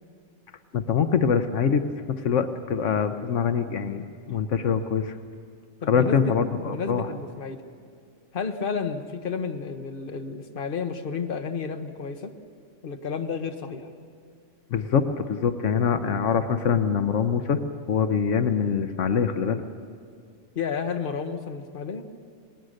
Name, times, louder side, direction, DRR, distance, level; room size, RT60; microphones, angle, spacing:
voice 1, 0.7-1.8 2.1-5.1 5.9-7.1 14.7-17.6 17.9-19.6, left 6 dB, 80° left, 9 dB, 1.2 m, -24 dB
voice 2, 5.8-7.6 8.3-12.3 12.8-13.9 20.5-22.1, left 5 dB, 45° left, 6 dB, 1.3 m, -31 dB
27.5 x 19.5 x 6.5 m, 2.2 s
omnidirectional pair, 1.3 m